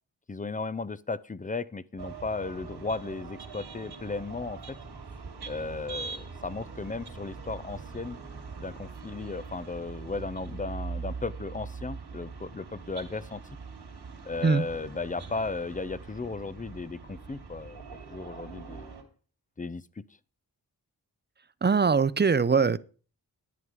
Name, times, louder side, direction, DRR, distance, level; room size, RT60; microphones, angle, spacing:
voice 1, 0.3-4.8 5.5-8.2 8.6-13.4 14.3-17.8 18.1-18.9 19.6-20.0, left 3 dB, 20° left, 0.6 m, -35 dB
sound 1, 2.0-19.0, right 5 dB, 85° right, 2.7 m, -42 dB
voice 2, 21.6-22.8, right 5 dB, 25° right, 0.6 m, -22 dB
11.0 x 9.3 x 4.8 m
wide cardioid pair, 70°, 39 cm